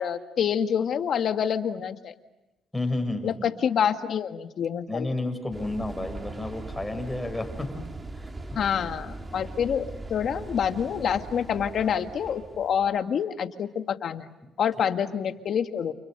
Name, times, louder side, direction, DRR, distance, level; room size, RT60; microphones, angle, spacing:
voice 1, 0.0-2.1 3.2-5.1 8.6-14.3 14.6-15.9, left 8 dB, 60° left, 7 dB, 1.8 m, -27 dB
voice 2, 2.7-3.5 4.9-8.3, left 2 dB, 10° left, 4 dB, 6.6 m, -31 dB
sound 1, 5.5-13.0, right 2 dB, 25° right, 2.4 m, -40 dB
30.0 x 29.0 x 6.7 m, 0.95 s
cardioid pair, 90°, 0 cm